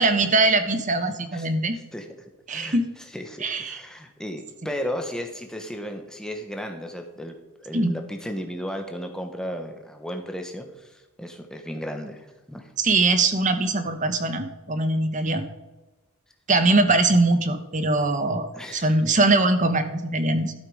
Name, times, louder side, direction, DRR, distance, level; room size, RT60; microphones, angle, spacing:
voice 1, 0.0-1.8 2.5-2.8 3.4-3.8 7.7-7.9 12.8-15.4 16.5-20.5, right 2 dB, 35° right, 9 dB, 1.1 m, -22 dB
voice 2, 3.1-12.7 18.5-18.9, equal, 5° left, 4 dB, 1.3 m, -34 dB
13.0 x 7.7 x 5.0 m, 1.1 s
head